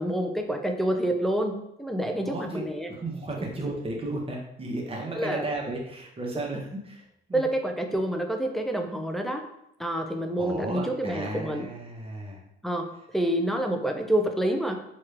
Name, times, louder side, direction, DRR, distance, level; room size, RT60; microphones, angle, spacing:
voice 1, 0.0-2.9 3.4-3.5 5.2-5.4 7.3-9.4 9.8-11.7 12.6-12.9 13.1-14.8, right 1 dB, ahead, 4 dB, 0.4 m, -28 dB
voice 2, 2.2-2.6 2.9-7.0 7.3-7.5 10.4-12.4, right 2 dB, 30° right, -1 dB, 0.8 m, -34 dB
3.0 x 2.3 x 3.2 m, 0.81 s
cardioid pair, 90°, 20 cm